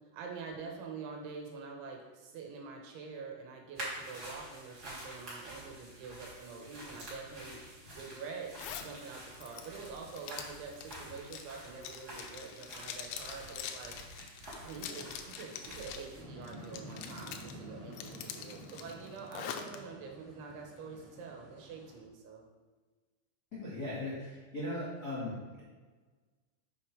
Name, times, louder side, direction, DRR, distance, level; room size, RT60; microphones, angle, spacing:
voice 1, 0.1-13.9 14.5-22.5, right 5 dB, 75° right, 1 dB, 3.3 m, -46 dB
sound 1, 3.7-16.2, right 1 dB, 30° right, 1.9 m, -48 dB
Zipper (clothing), 8.5-8.9 9.3-16.1 16.4-17.5 17.9-19.8, left 8 dB, 80° left, 2.6 m, -44 dB
sound 2, 16.1-22.0, equal, 50° right, 2.4 m, -50 dB
voice 2, 23.5-25.6, left 1 dB, 35° left, -10 dB, 1.6 m, -38 dB
7.5 x 6.4 x 4.9 m, 1.4 s
omnidirectional pair, 5.7 m